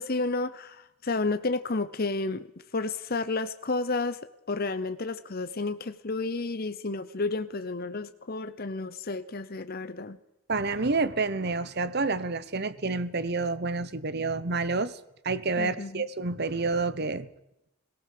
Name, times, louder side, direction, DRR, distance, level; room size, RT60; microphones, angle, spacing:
voice 1, 0.0-2.5 2.7-4.2 4.5-10.2 15.6-16.1, left 3 dB, 45° left, 11 dB, 0.8 m, -31 dB
voice 2, 10.5-15.0 15.2-17.3, right 3 dB, 50° right, 16 dB, 1.1 m, -29 dB
21.5 x 17.5 x 6.7 m, 0.86 s
head